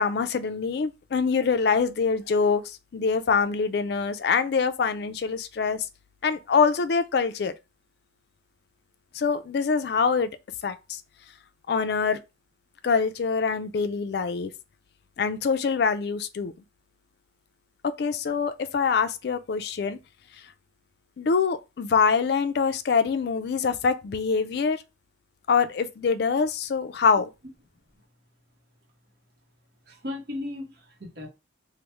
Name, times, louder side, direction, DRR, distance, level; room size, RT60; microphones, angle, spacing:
voice 1, 0.0-5.9 6.2-7.5 9.1-10.3 10.6-11.0 11.7-12.2 12.8-14.5 15.2-16.5 18.0-20.0 21.2-24.8 25.5-27.3, left 5 dB, 55° left, 0.3 m, -24 dB
voice 2, 29.9-31.3, left 2 dB, 60° right, 0.8 m, -36 dB
3.3 x 2.0 x 3.0 m
head